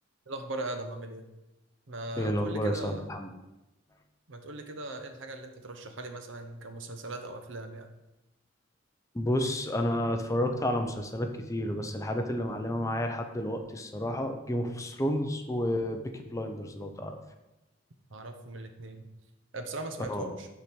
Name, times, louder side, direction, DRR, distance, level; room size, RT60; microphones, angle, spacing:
voice 1, 0.3-1.2 1.9-3.1 4.3-7.9 18.1-19.1 19.5-20.5, right 2 dB, 70° right, 7 dB, 0.8 m, -39 dB
voice 2, 2.2-3.3 9.1-17.2 20.1-20.3, left 1 dB, 15° left, 5 dB, 0.6 m, -31 dB
5.7 x 5.1 x 6.1 m, 0.99 s
head